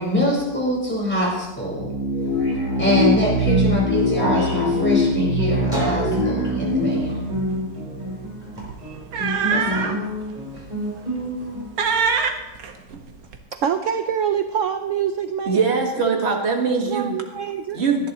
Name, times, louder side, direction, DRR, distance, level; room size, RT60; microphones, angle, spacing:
voice 1, 0.0-1.9 2.8-7.2 9.5-10.0, equal, 5° left, -5 dB, 4.7 m, -24 dB
sound 1, 1.6-8.7, left 1 dB, 50° left, 2.8 m, -23 dB
Guitar, 2.3-11.7, equal, 20° right, 4.3 m, -29 dB
sound 2, 6.9-7.0 7.3-7.6 8.6-10.0 10.5-10.7 11.2-11.5 11.8-13.4, right 5 dB, 60° right, 1.4 m, -24 dB
voice 2, 13.5-15.8 16.9-17.8, right 8 dB, 80° right, 8 dB, 0.7 m, -25 dB
voice 3, 15.4-17.2 17.7-18.1, right 5 dB, 40° right, 1 dB, 1.8 m, -22 dB
18.0 x 12.0 x 3.0 m, 1.1 s
omnidirectional pair, 1.9 m